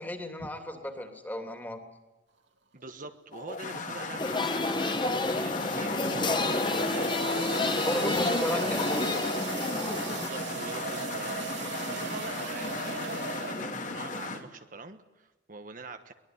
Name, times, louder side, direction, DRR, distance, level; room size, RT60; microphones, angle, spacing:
voice 1, 0.0-1.8 7.8-9.3, left 1 dB, 10° left, 5 dB, 2.9 m, -34 dB
voice 2, 2.7-8.4 9.9-16.1, right 3 dB, 45° right, 7 dB, 1.3 m, -44 dB
sound 1, 2.8-3.1 4.7-14.0, right 6 dB, 70° right, 2.9 m, -39 dB
sound 2, 3.3-14.4, left 3 dB, 40° left, 2.4 m, -34 dB
sound 3, 4.2-10.3, left 2 dB, 25° left, 1.4 m, -30 dB
23.0 x 20.0 x 9.5 m, 1.1 s
head